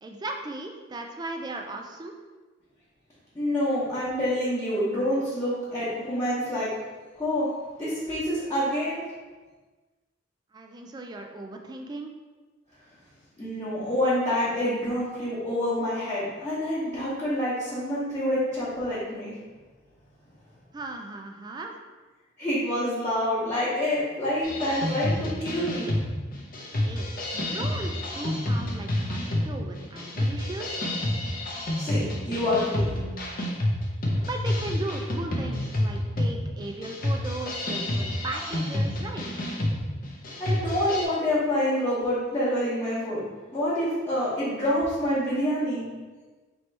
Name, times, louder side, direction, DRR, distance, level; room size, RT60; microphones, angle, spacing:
voice 1, 0.0-2.1 10.5-12.1 20.7-21.8 26.8-30.8 34.2-39.4, right 2 dB, 20° right, 3 dB, 0.3 m, -37 dB
voice 2, 3.3-6.7 7.2-7.5 7.8-9.0 13.4-19.3 22.4-25.9 31.7-32.9 40.4-43.3 43.5-45.8, left 1 dB, 15° left, -12 dB, 0.9 m, -27 dB
sound 1, 24.4-41.0, left 1 dB, 45° left, 0.6 m, -29 dB
3.1 x 2.9 x 4.5 m, 1.3 s
head